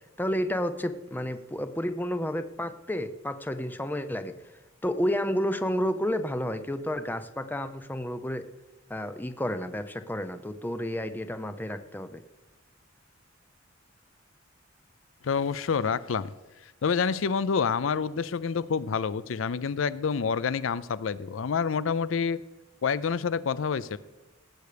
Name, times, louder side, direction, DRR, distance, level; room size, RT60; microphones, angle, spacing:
voice 1, 0.2-4.3 4.8-8.4 8.9-12.2, equal, 10° left, 10 dB, 0.6 m, -31 dB
voice 2, 15.2-16.3 16.8-22.4 22.8-24.0, left 6 dB, 80° left, 18 dB, 0.5 m, -28 dB
18.5 x 8.1 x 5.1 m, 1.2 s
head